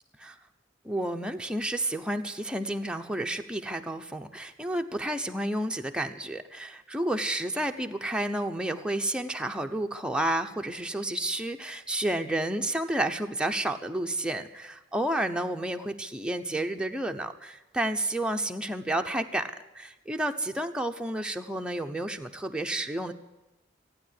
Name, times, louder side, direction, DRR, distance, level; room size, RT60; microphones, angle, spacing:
voice 1, 0.8-23.1, right 1 dB, 5° right, 4 dB, 0.9 m, -31 dB
15.5 x 9.7 x 9.5 m, 1.0 s
head